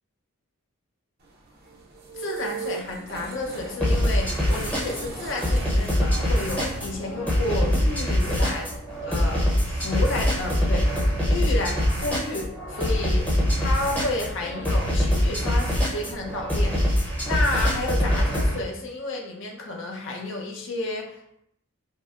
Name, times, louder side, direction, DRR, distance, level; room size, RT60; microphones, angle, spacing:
sound 1, 1.2-12.6, right 4 dB, 45° right, 0.6 m, -41 dB
voice 1, 2.1-8.7 9.0-13.3 13.6-21.4, left 2 dB, 55° left, 0 dB, 0.7 m, -31 dB
sound 2, 3.8-18.6, equal, 5° left, 0.8 m, -24 dB
5.5 x 2.2 x 2.5 m, 0.74 s
head